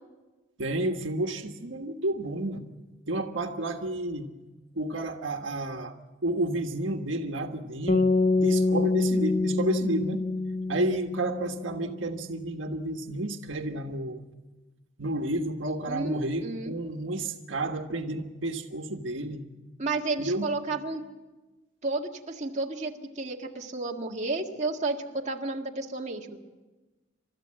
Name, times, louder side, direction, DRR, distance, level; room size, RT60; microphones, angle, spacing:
voice 1, 0.6-2.6 3.1-4.3 4.7-6.0 6.2-8.1 8.3-10.3 10.7-14.2 15.0-19.4 20.2-20.5, right 1 dB, 80° right, 4 dB, 1.5 m, -31 dB
sound 1, 7.9-12.1, left 3 dB, 35° left, 0.6 m, -26 dB
voice 2, 15.9-16.7 19.8-21.0 21.8-26.4, right 3 dB, 40° right, 0 dB, 1.8 m, -32 dB
29.5 x 13.5 x 7.7 m, 1.2 s
head